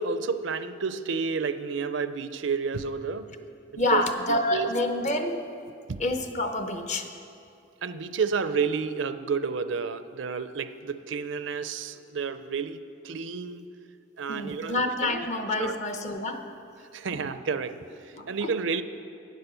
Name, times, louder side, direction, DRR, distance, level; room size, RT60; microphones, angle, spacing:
voice 1, 0.0-3.3 3.7-4.0 4.5-4.7 5.9-6.0 7.8-13.7 14.2-15.3 15.6-15.7 16.9-18.8, right 5 dB, 80° right, 12 dB, 0.5 m, -30 dB
voice 2, 3.8-5.4 6.0-7.1 14.3-16.4 18.2-18.5, left 1 dB, 40° left, 7 dB, 0.8 m, -28 dB
10.5 x 9.3 x 6.8 m, 2.5 s
head